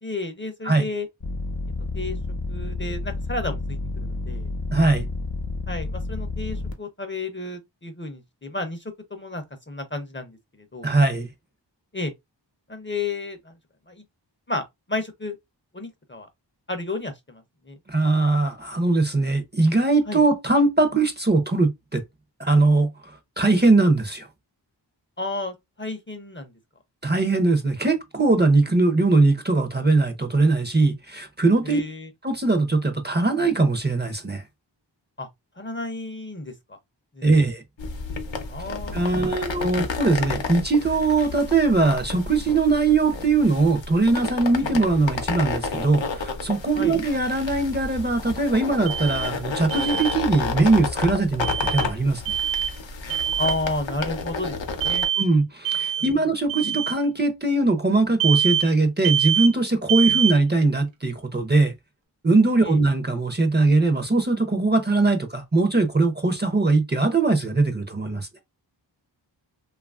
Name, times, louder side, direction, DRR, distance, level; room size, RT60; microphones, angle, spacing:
voice 1, 0.0-1.1 1.9-2.2 2.5-4.5 5.7-8.8 9.1-10.4 10.7-10.9 11.9-12.1 12.7-13.5 13.9-14.0 14.5-14.6 14.9-15.3 15.7-16.3 16.7-17.8 20.1-20.2 25.2-26.5 31.6-32.1 35.2-35.3 35.6-36.8 37.2-37.4 38.5-39.5 39.7-39.9 46.7-47.0 53.4-54.5 54.8-55.1 60.0-60.1 62.6-62.8, left 2 dB, 25° left, 0.5 m, -32 dB
sound 1, 1.2-6.7, left 2 dB, 55° left, 0.9 m, -30 dB
voice 2, 4.7-5.1 10.8-11.3 17.9-22.0 22.4-24.3 27.0-31.8 32.2-34.4 37.2-37.6 38.9-52.3 55.2-61.7 62.2-68.3, right 3 dB, 25° right, 0.5 m, -21 dB
sound 2, 37.8-55.1, left 4 dB, 85° left, 0.7 m, -31 dB
Alarm, 48.9-49.3 49.7-50.2 51.4-51.9 52.3-52.7 53.1-53.6 54.8-55.3 55.7-56.1 56.5-56.9 58.2-58.7 59.0-59.5 59.9-60.4, right 9 dB, 80° right, 0.7 m, -24 dB
2.8 x 2.4 x 2.3 m
wide cardioid pair, 45°, 44 cm